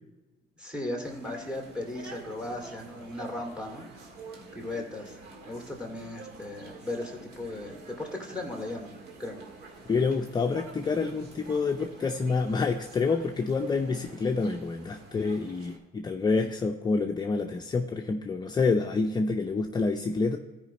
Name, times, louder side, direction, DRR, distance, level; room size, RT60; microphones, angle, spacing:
voice 1, 0.6-3.9 4.5-5.2 5.5-8.9 9.2-9.4, left 1 dB, 5° right, 0 dB, 2.3 m, -36 dB
sound 1, 1.0-15.8, right 3 dB, 75° right, 1.7 m, -48 dB
voice 2, 9.9-20.4, left 4 dB, 25° left, 4 dB, 0.5 m, -27 dB
13.5 x 5.0 x 4.1 m, 1.2 s
cardioid pair, 110°, 17 cm